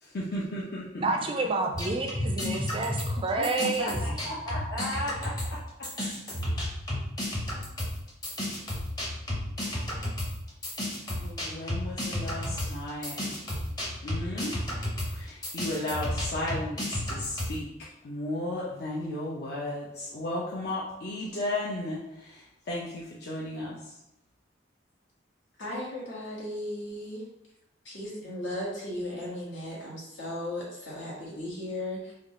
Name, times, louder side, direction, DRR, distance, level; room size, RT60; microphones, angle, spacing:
voice 1, 0.0-1.1 3.4-3.5 3.8-5.6 11.2-13.4 14.0-14.6 15.1-17.7 18.0-23.9, left 1 dB, 55° left, 0.6 m, -34 dB
voice 2, 1.0-4.2, right 3 dB, 30° right, 0.3 m, -29 dB
sound 1, 1.7-5.6 5.8-17.6, left 1 dB, 20° left, 0.7 m, -32 dB
voice 3, 25.6-27.2 27.8-32.1, left 1 dB, 80° left, 1.5 m, -36 dB
3.6 x 2.3 x 3.7 m
head